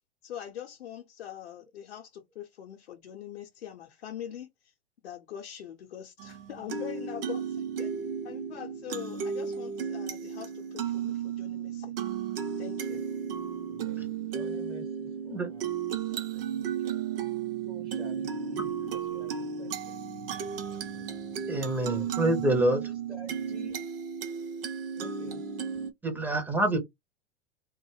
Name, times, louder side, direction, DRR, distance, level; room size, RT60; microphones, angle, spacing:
voice 1, 0.2-4.7 5.0-7.9 8.2-11.9 12.6-13.0, left 10 dB, 70° left, 0.6 m, -43 dB
sound 1, 6.2-25.9, right 7 dB, 55° right, 0.7 m, -34 dB
voice 2, 13.7-15.7 16.1-17.0 17.6-20.6 20.9-21.1 21.6-22.1 23.1-23.8 24.9-25.4, right 2 dB, 85° right, 1.0 m, -50 dB
voice 3, 21.5-22.8 26.0-26.8, right 1 dB, 5° right, 0.5 m, -26 dB
2.3 x 2.1 x 3.1 m
figure-of-eight pair, 95°, 34 cm